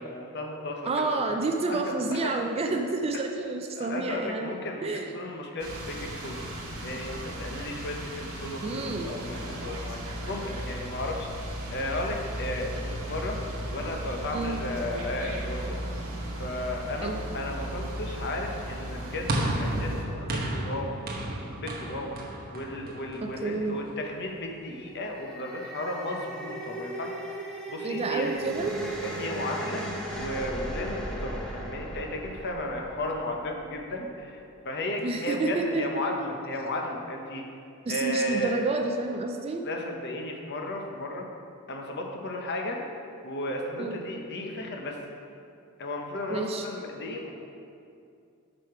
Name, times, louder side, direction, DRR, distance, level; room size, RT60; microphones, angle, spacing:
voice 1, 0.0-1.2 1.7-2.3 3.8-6.4 6.8-10.0 10.3-11.3 11.7-13.4 13.7-15.8 16.4-21.0 21.6-22.2 22.5-28.3 29.0-37.4 37.9-38.6 39.6-41.3 41.7-42.8 43.2-45.0 45.8-47.4, left 1 dB, 50° left, 1 dB, 0.8 m, -34 dB
voice 2, 0.8-4.5 4.8-5.1 8.6-9.1 14.3-14.6 17.0-17.2 23.2-23.8 27.8-28.7 35.0-36.0 37.9-39.7 43.8-44.0 46.3-46.7, right 3 dB, 25° right, 4 dB, 0.3 m, -29 dB
sound 1, 5.6-20.0, right 1 dB, 80° right, 1.2 m, -36 dB
sound 2, 19.3-23.7, right 1 dB, 45° right, 0.9 m, -32 dB
sound 3, 24.8-34.1, right 2 dB, 5° left, 0.7 m, -37 dB
6.3 x 4.8 x 4.7 m, 2.5 s
head